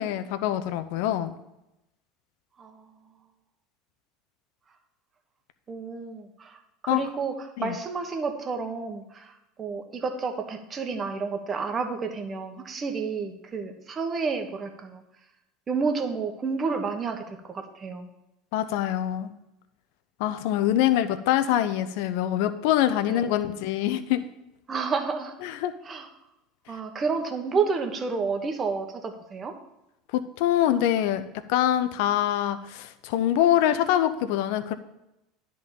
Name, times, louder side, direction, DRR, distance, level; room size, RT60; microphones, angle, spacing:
voice 1, 0.0-1.3 6.9-7.0 7.6-7.8 18.5-19.3 20.2-24.2 25.4-25.7 30.1-31.2 31.5-34.7, left 12 dB, 70° left, 11 dB, 0.6 m, -24 dB
voice 2, 5.7-9.3 9.6-15.0 15.7-18.1 23.1-23.2 24.7-25.3 25.8-26.1 26.7-29.5, right 4 dB, 30° right, 6 dB, 1.2 m, -30 dB
10.5 x 3.8 x 6.9 m, 0.90 s
hypercardioid pair, 85°, 0 cm